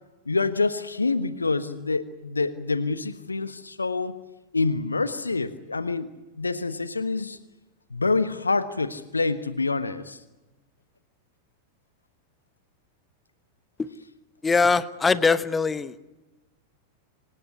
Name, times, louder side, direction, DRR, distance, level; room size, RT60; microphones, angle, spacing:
voice 1, 0.3-4.2 4.5-6.1 6.4-7.4 7.9-10.2, left 3 dB, 80° left, 14 dB, 1.3 m, -26 dB
voice 2, 14.4-15.9, left 4 dB, 15° left, 16 dB, 1.1 m, -22 dB
26.0 x 18.5 x 9.8 m, 1.1 s
figure-of-eight pair, 90°, 0 cm